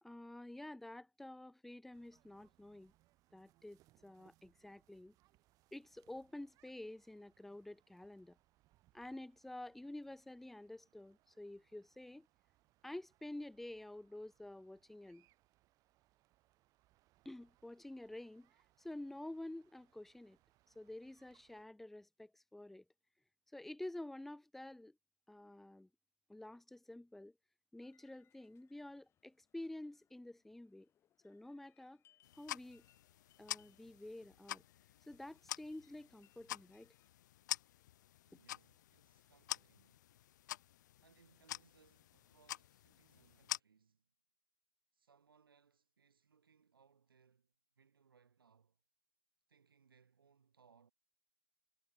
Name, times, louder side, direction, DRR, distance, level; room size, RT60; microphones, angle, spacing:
voice 1, 0.0-2.9 3.3-5.1 5.7-8.4 8.9-12.3 12.8-15.3 17.2-18.5 18.8-20.4 20.8-22.8 23.5-25.0 25.3-25.9 26.3-27.3 27.7-30.9 31.2-32.0 32.4-32.8 33.4-34.6 35.1-36.9, left 1 dB, ahead, 0.6 m, -50 dB
sound 1, 1.9-21.6, right 18 dB, 30° right, 6.4 m, -75 dB
sound 2, 27.8-37.1, left 10 dB, 20° left, 4.6 m, -77 dB
sound 3, 32.2-43.6, left 13 dB, 55° left, 0.4 m, -48 dB
voice 2, 38.3-40.0 41.0-44.1 44.9-48.8 49.5-50.9, right 6 dB, 80° right, 2.1 m, -70 dB
hypercardioid pair, 120°, 12 cm